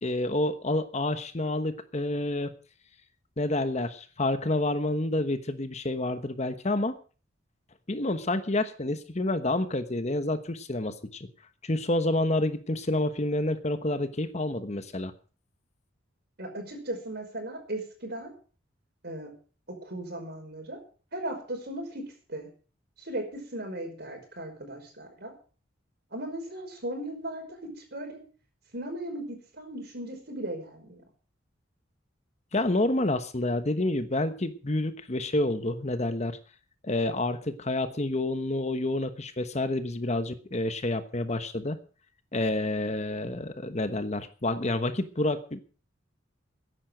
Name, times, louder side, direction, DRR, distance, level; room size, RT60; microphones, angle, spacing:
voice 1, 0.0-2.5 3.4-6.9 7.9-11.3 11.6-15.1 32.5-36.4 36.8-41.8 42.3-45.6, left 2 dB, 35° left, 10 dB, 1.1 m, -28 dB
voice 2, 16.4-18.3 19.0-19.3 19.7-20.8 21.1-22.5 23.0-25.3 26.1-27.4 27.8-28.2 28.7-31.0, right 1 dB, 55° right, 4 dB, 5.3 m, -37 dB
14.0 x 10.5 x 6.4 m, 0.39 s
head